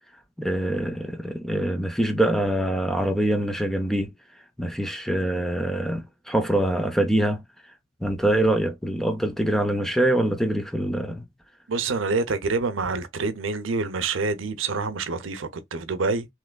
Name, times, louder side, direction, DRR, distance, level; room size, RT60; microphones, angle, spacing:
voice 1, 0.4-4.1 4.6-7.4 8.0-11.2, right 1 dB, ahead, 0.4 m, -24 dB
voice 2, 11.7-16.3, right 4 dB, 75° right, 0.6 m, -27 dB
3.3 x 3.0 x 2.2 m
head